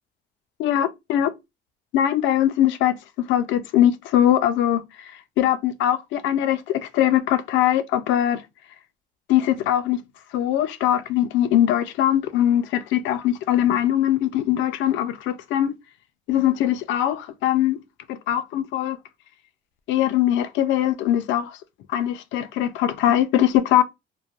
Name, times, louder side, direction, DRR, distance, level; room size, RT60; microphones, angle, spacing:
voice 1, 0.6-1.3 1.9-4.8 5.4-8.4 9.3-10.0 10.3-15.7 16.3-17.8 18.1-19.0 19.9-21.6 21.9-23.8, left 11 dB, 70° left, 0.4 m, -21 dB
3.1 x 2.1 x 2.4 m
cardioid pair, 125°, 20 cm